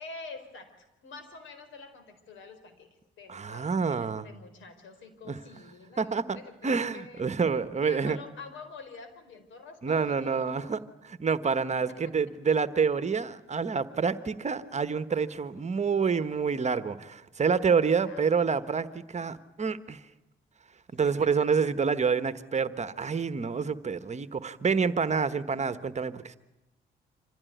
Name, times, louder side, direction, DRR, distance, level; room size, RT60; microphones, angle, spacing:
voice 1, 0.0-2.9 3.2-7.2 7.8-10.8 11.9-12.1 17.3-18.3 21.0-21.2, left 4 dB, 75° left, 9 dB, 4.4 m, -46 dB
voice 2, 3.3-4.3 5.3-5.4 6.0-6.4 6.6-8.2 9.8-20.0 20.9-26.4, right 5 dB, 35° right, 13 dB, 1.3 m, -28 dB
26.0 x 16.0 x 9.3 m, 1.0 s
cardioid pair, 90°, 20 cm